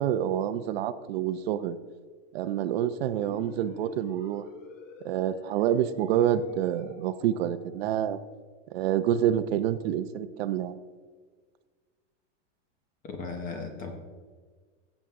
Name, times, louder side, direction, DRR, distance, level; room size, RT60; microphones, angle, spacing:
voice 1, 0.0-1.8 2.3-4.4 5.0-8.2 8.7-10.8, right 10 dB, 55° right, 12 dB, 0.7 m, -27 dB
sound 1, 3.1-7.9, left 5 dB, 85° left, 1.6 m, -50 dB
voice 2, 13.0-13.9, left 4 dB, 20° left, 5 dB, 1.1 m, -36 dB
15.0 x 7.4 x 3.7 m, 1.5 s
supercardioid pair, 165°, 36 cm